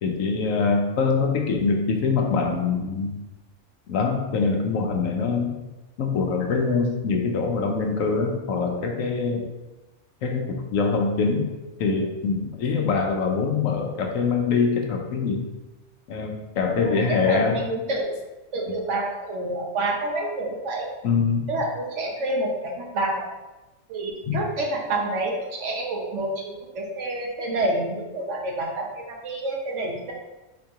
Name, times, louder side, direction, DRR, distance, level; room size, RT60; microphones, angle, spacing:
voice 1, 0.0-3.1 3.9-5.6 6.0-9.5 10.2-11.5 11.8-15.5 16.1-17.6 21.0-21.6 24.2-24.4, left 4 dB, 80° left, 2 dB, 1.1 m, -24 dB
voice 2, 16.8-18.1 18.5-20.9 21.5-23.3 23.9-30.1, right 2 dB, 65° right, 0 dB, 1.1 m, -28 dB
4.3 x 2.9 x 3.6 m, 1.1 s
omnidirectional pair, 1.4 m